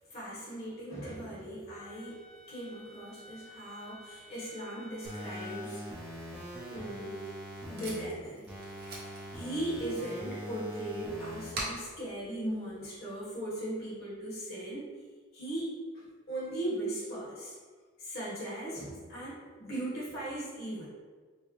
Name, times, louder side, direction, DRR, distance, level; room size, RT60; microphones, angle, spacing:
voice 1, 0.1-7.3 7.7-8.5 9.3-14.9 15.3-17.6 18.0-20.9, right 1 dB, 50° left, -8 dB, 1.5 m, -38 dB
Wind instrument woodwind instrument, 1.7-5.7, left 2 dB, 65° left, 1.4 m, -52 dB
sound 1, 5.0-8.0 8.5-11.5, equal, 5° right, 0.6 m, -43 dB
Packing tape duct tape, 6.8-13.3, right 1 dB, 50° right, 0.9 m, -46 dB
4.6 x 2.1 x 3.2 m, 1.5 s
head